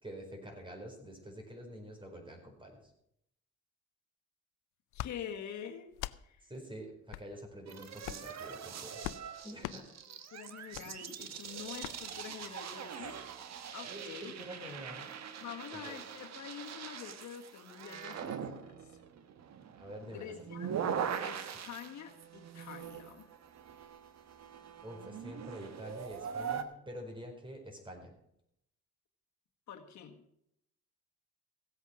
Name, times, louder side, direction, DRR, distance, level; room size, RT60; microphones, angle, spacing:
voice 1, 0.0-2.8 6.5-9.0 9.4-9.9 13.8-15.1 15.7-16.0 19.8-20.3 24.8-28.1, equal, 15° right, 2 dB, 4.5 m, -47 dB
sound 1, 4.9-5.1 5.9-6.2 7.1-7.3 8.0-8.3 9.0-9.2 9.6-9.8 10.7-10.9 11.8-12.0, left 16 dB, 85° left, 0.5 m, -40 dB
voice 2, 4.9-5.9 6.2-6.5 9.6-9.8 10.3-13.2 13.7-14.3 15.4-19.0 20.0-20.8 21.2-23.3 29.7-30.2, left 8 dB, 70° left, 3 dB, 1.6 m, -46 dB
sound 2, 7.7-26.6, right 8 dB, 60° right, 1.3 m, -42 dB
16.5 x 8.2 x 6.1 m, 0.75 s
cardioid pair, 90°, 30 cm